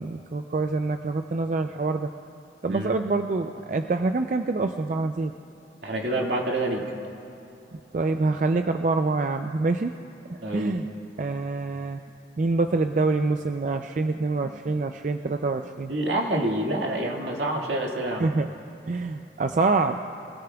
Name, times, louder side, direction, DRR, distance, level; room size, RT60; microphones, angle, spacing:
voice 1, 0.0-2.1 2.6-5.3 7.9-9.9 10.5-10.9 11.2-12.0 12.4-15.9 18.2-18.5 18.9-20.0, right 3 dB, 45° right, 7 dB, 0.4 m, -26 dB
voice 2, 5.8-6.8 10.4-10.7 15.9-18.3, right 1 dB, 80° right, -1 dB, 2.0 m, -27 dB
24.0 x 17.0 x 2.3 m, 2.9 s
head